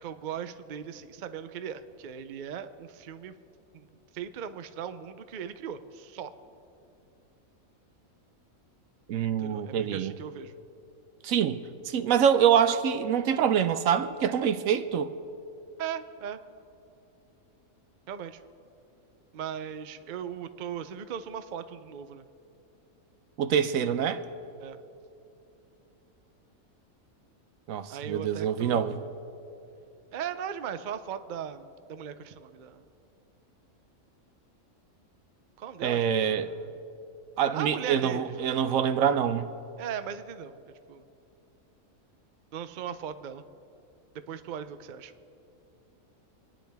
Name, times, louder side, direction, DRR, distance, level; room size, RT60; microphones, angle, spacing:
voice 1, 0.0-3.3 3.7-3.9 4.1-6.3 9.4-10.6 15.8-16.4 18.1-18.4 19.3-22.3 24.6-24.8 27.9-29.1 30.1-32.8 35.6-36.6 37.5-38.6 39.8-40.5 40.9-41.0 42.5-43.4 44.3-45.1, right 8 dB, 60° right, 11 dB, 0.5 m, -38 dB
voice 2, 9.1-10.1 11.2-15.1 23.4-24.2 27.7-29.0 35.8-36.5 37.4-39.5, right 8 dB, 75° right, 11 dB, 1.0 m, -25 dB
26.0 x 10.0 x 3.4 m, 2.7 s
omnidirectional pair, 1.5 m